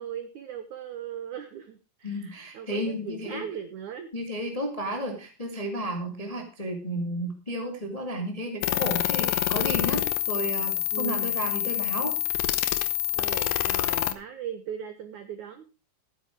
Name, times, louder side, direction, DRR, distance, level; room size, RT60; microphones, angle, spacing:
voice 1, 0.0-4.1 10.9-11.4 13.1-15.6, right 8 dB, 75° right, 9 dB, 1.8 m, -38 dB
voice 2, 2.0-3.4 4.1-12.2, equal, 20° left, 3 dB, 1.0 m, -33 dB
sound 1, 8.6-14.1, left 13 dB, 85° left, 1.9 m, -27 dB
14.0 x 10.0 x 4.6 m, 0.32 s
omnidirectional pair, 4.9 m